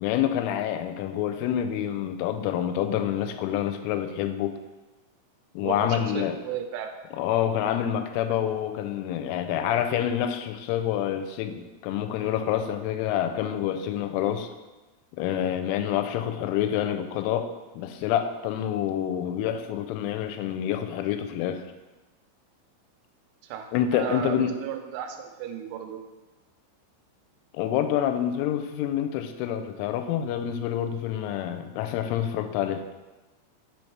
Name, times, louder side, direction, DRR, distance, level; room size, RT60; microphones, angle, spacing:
voice 1, 0.0-4.6 5.6-6.4 7.1-14.5 15.1-17.5 17.7-21.6 23.7-24.5 27.5-32.8, left 10 dB, 85° left, 8 dB, 3.0 m, -27 dB
voice 2, 5.6-6.9 23.4-26.0, right 8 dB, 85° right, 6 dB, 3.1 m, -34 dB
6.8 x 4.2 x 4.5 m, 1.2 s
omnidirectional pair, 5.5 m